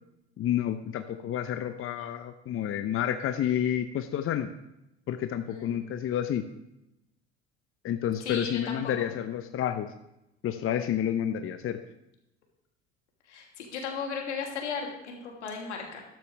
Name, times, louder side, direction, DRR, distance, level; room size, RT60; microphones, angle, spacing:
voice 1, 0.4-4.5 5.1-6.5 7.8-9.9 10.4-11.8, left 10 dB, 40° left, 9 dB, 0.8 m, -29 dB
voice 2, 8.2-9.1 13.2-16.0, left 5 dB, 80° left, 0 dB, 3.0 m, -36 dB
13.5 x 12.0 x 3.4 m, 0.89 s
hypercardioid pair, 70°, 34 cm